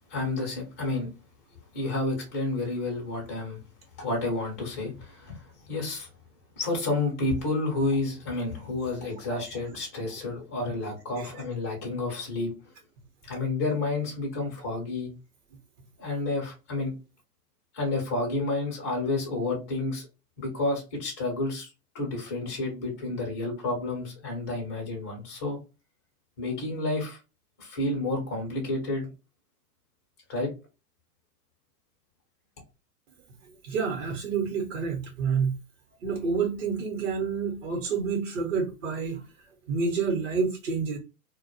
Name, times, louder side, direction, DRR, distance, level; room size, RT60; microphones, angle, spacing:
voice 1, 0.1-1.1 1.7-3.6 4.0-6.1 6.6-12.5 13.2-15.1 16.0-16.9 17.7-20.1 20.4-25.6 26.4-27.2 27.6-29.1 30.3-30.5, left 2 dB, 15° left, 0.3 m, -30 dB
voice 2, 33.6-35.6 36.0-39.2 39.7-41.0, right 5 dB, 50° right, 0.9 m, -28 dB
2.2 x 2.1 x 2.8 m
hypercardioid pair, 115°, 46 cm